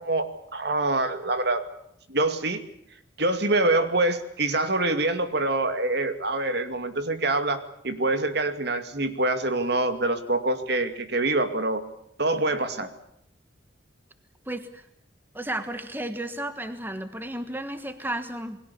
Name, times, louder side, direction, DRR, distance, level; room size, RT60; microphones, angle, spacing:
voice 1, 0.0-1.6 2.1-2.6 3.2-11.8 12.2-12.9, right 2 dB, 60° right, 8 dB, 2.4 m, -25 dB
voice 2, 14.5-14.9 15.3-18.6, right 1 dB, 10° right, 9 dB, 1.4 m, -33 dB
29.0 x 21.5 x 7.1 m, 0.75 s
head